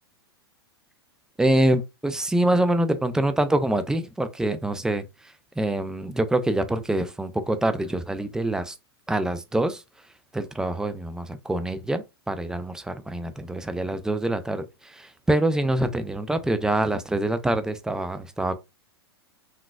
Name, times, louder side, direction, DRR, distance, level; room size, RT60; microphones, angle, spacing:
voice 1, 1.4-5.0 5.6-8.8 9.1-9.8 10.3-18.5, right 1 dB, 5° right, 0.3 m, -25 dB
3.9 x 2.3 x 2.2 m
hypercardioid pair, 115°, 14 cm